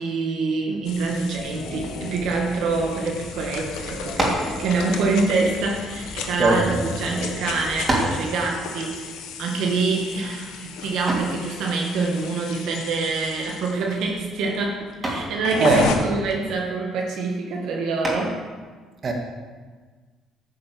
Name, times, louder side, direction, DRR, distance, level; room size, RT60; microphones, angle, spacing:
voice 1, 0.0-18.4, right 3 dB, 75° right, 0 dB, 1.8 m, -26 dB
sound 1, 0.8-16.0, left 6 dB, 85° left, 1.3 m, -34 dB
sound 2, 1.4-9.0, left 2 dB, 45° left, 2.1 m, -38 dB
sound 3, 4.1-4.6 5.5-6.7 7.3-7.4 7.9-8.3 11.1-11.4 13.3-13.7 14.1-14.4 15.0-15.4 18.0-18.5, right 1 dB, 25° right, 3.5 m, -26 dB
voice 2, 6.4-6.8 15.6-15.8 19.0-19.1, right 3 dB, 40° right, 1 dB, 2.0 m, -19 dB
10.0 x 6.6 x 7.5 m, 1.4 s
cardioid pair, 95°, 0 cm